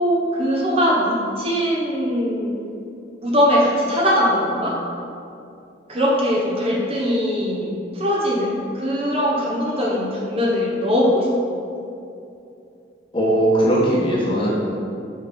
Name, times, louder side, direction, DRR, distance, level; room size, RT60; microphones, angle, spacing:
voice 1, 0.0-2.5 3.2-4.8 5.9-11.3, equal, 30° right, -4 dB, 1.1 m, -21 dB
voice 2, 13.1-14.5, right 1 dB, 30° left, -5 dB, 1.3 m, -18 dB
5.5 x 5.3 x 5.2 m, 2.7 s
head